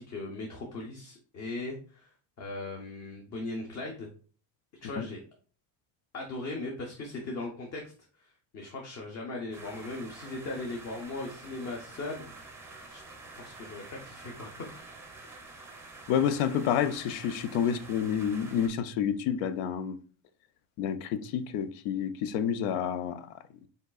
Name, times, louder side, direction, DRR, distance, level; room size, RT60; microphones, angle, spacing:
voice 1, 0.0-2.1 2.4-4.1 4.8-5.2 6.1-7.9 8.2-12.3 12.9-13.0 13.4-14.7, left 2 dB, 35° left, 0.7 m, -38 dB
sound 1, 9.5-18.7, right 3 dB, 5° right, 0.5 m, -48 dB
voice 2, 16.1-20.0 20.8-23.3, left 8 dB, 85° left, 0.6 m, -29 dB
5.0 x 3.9 x 2.3 m
cardioid pair, 155°, 50 cm